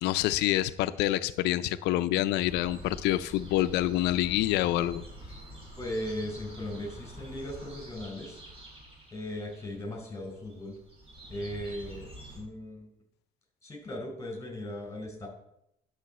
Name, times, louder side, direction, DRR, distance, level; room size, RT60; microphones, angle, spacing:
voice 1, 0.0-5.0, left 14 dB, 90° left, 13 dB, 0.4 m, -27 dB
sound 1, 2.4-12.4, right 1 dB, 35° right, 4.6 m, -47 dB
voice 2, 5.8-8.4 9.1-10.7 11.3-12.1 12.3-12.9 13.6-15.3, left 1 dB, 15° left, 1 dB, 4.3 m, -37 dB
11.5 x 6.9 x 4.2 m, 0.79 s
cardioid pair, 110°, 17 cm